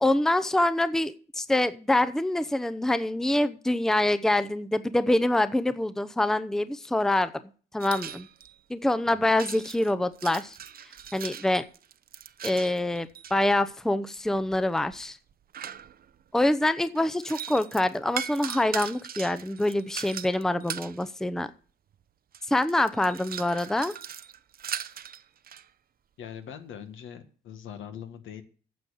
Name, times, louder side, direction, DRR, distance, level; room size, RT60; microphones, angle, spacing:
voice 1, 0.0-7.3 7.7-8.3 8.7-10.6 11.1-11.6 12.4-15.2 16.3-21.5 22.5-23.9, left 1 dB, ahead, 13 dB, 0.7 m, -25 dB
sound 1, 7.8-8.6 9.4-13.4 14.3-16.2 17.0-21.0 21.9-22.0 22.3-25.7, right 9 dB, 50° right, 0.7 m, -39 dB
voice 2, 26.2-28.4, left 8 dB, 80° left, 8 dB, 1.7 m, -42 dB
9.4 x 7.0 x 8.5 m, 0.41 s
cardioid pair, 90°, 20 cm